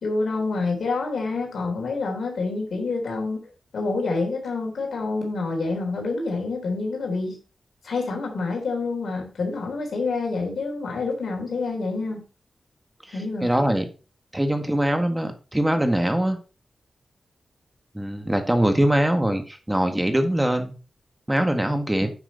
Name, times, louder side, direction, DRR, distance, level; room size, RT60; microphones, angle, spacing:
voice 1, 0.0-3.4 3.7-7.4 7.8-12.2 13.1-13.7, left 3 dB, 75° left, 1 dB, 3.5 m, -27 dB
voice 2, 13.1-13.9 14.3-16.4 17.9-20.7 21.3-22.1, right 1 dB, 15° right, 6 dB, 1.7 m, -22 dB
9.5 x 6.0 x 4.1 m, 0.34 s
cardioid pair, 50°, 0 cm